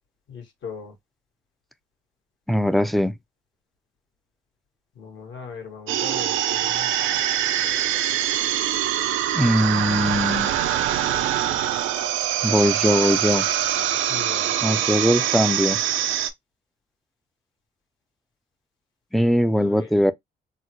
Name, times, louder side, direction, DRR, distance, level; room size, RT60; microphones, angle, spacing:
voice 1, 0.3-1.0 5.0-7.2 13.9-14.7 19.6-19.9, left 6 dB, 70° left, 1.7 m, -39 dB
voice 2, 2.5-3.2 9.3-10.5 12.4-13.5 14.6-15.8 19.1-20.1, equal, ahead, 0.4 m, -20 dB
sound 1, 5.9-16.3, right 11 dB, 85° right, 0.5 m, -24 dB
3.9 x 2.1 x 3.0 m
cardioid pair, 90°, 20 cm